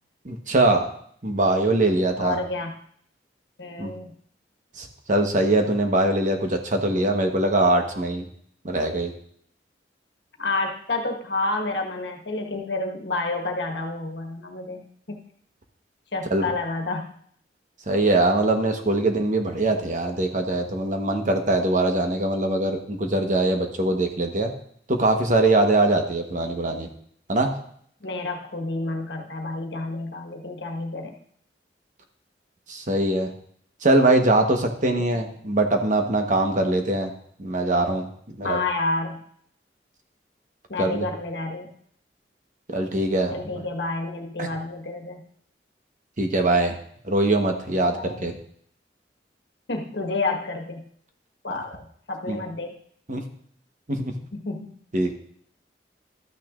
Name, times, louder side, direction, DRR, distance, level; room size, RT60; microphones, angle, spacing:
voice 1, 0.2-0.9 1.2-2.4 3.8-3.9 4.8-8.2 8.6-9.1 16.3-16.5 17.9-24.5 24.9-26.9 27.3-27.6 32.7-33.3 33.8-37.1 37.4-38.6 40.8-41.0 42.7-43.3 44.4-44.5 46.2-46.8 47.0-48.3 52.3-52.4 53.1-53.2 53.9-54.1 54.9-55.1, right 2 dB, 45° right, 4 dB, 1.1 m, -22 dB
voice 2, 2.2-2.7 3.6-4.1 10.4-15.3 16.1-17.1 28.0-31.1 35.0-35.3 38.4-39.2 40.7-41.7 43.3-45.2 47.9-48.3 49.7-50.9 51.4-51.8 52.1-52.7 54.3-54.7, left 2 dB, 75° left, 3 dB, 1.4 m, -29 dB
13.0 x 9.1 x 2.5 m, 0.63 s
head